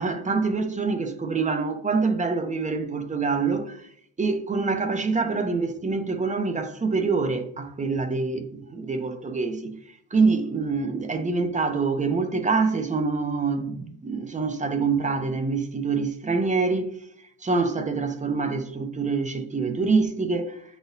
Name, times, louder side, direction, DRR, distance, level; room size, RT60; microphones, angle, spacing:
voice 1, 0.0-3.9 4.2-9.8 10.1-16.9 17.4-20.6, right 4 dB, 15° right, 0.7 m, -25 dB
9.2 x 4.2 x 2.6 m
cardioid pair, 115°, 48 cm